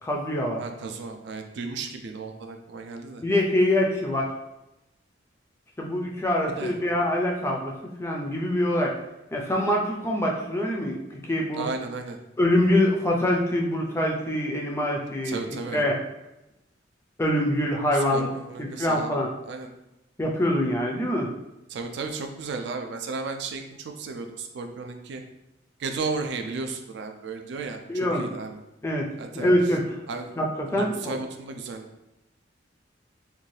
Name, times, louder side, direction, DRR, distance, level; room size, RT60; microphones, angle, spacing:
voice 1, 0.0-0.6 3.2-4.3 5.8-7.7 8.0-8.9 9.3-11.7 12.4-15.4 15.7-16.0 17.2-18.3 18.6-19.3 20.2-21.3 27.9-28.2 28.8-29.1 29.3-30.0 30.4-31.2, left 1 dB, 15° left, 0 dB, 0.3 m, -24 dB
voice 2, 0.6-3.2 6.6-6.8 11.5-12.2 15.2-15.8 17.9-19.2 19.4-19.7 21.7-25.2 25.8-28.6 29.2-29.5 30.1-30.3 30.7-31.9, right 4 dB, 65° right, 5 dB, 0.3 m, -34 dB
2.6 x 2.3 x 3.1 m, 0.91 s
head